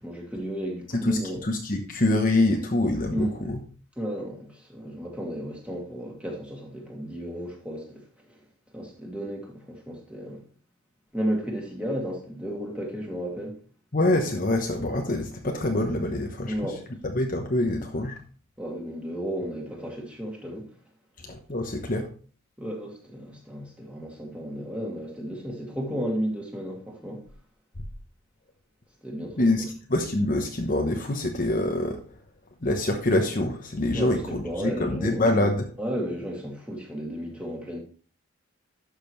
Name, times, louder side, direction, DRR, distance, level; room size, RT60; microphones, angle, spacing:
voice 1, 0.0-1.4 3.1-3.3 4.0-7.9 8.3-8.4 8.7-10.4 11.1-13.6 16.4-16.8 18.6-20.7 22.6-27.2 29.0-29.5 33.9-35.2 35.8-37.8, equal, 5° right, 2.5 m, -33 dB
voice 2, 1.0-3.6 13.9-16.5 17.0-18.2 21.2-22.1 29.4-32.0 32.6-35.7, left 1 dB, 40° left, 1.0 m, -25 dB
12.0 x 6.6 x 3.2 m
head